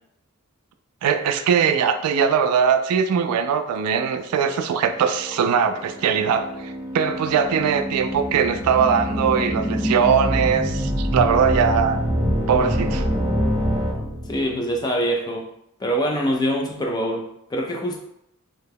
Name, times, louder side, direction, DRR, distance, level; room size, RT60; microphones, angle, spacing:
voice 1, 1.0-12.0 12.5-13.1, right 7 dB, 90° right, 12 dB, 0.3 m, -21 dB
sound 1, 3.9-13.9, equal, 65° left, 1.2 m, -32 dB
sound 2, 8.2-14.5, equal, ahead, 0.9 m, -25 dB
voice 2, 14.3-15.5 15.8-18.0, equal, 20° left, 1 dB, 0.3 m, -24 dB
2.8 x 2.1 x 3.4 m, 0.78 s
head